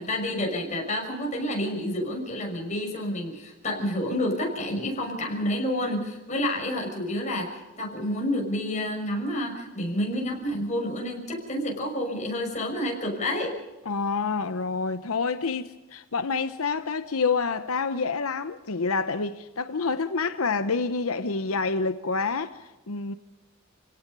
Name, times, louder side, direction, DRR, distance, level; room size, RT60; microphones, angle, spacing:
voice 1, 0.0-13.6, left 1 dB, 35° left, 6.1 m, -29 dB
voice 2, 13.9-23.1, left 4 dB, 90° left, 0.9 m, -28 dB
29.0 x 17.5 x 5.5 m
head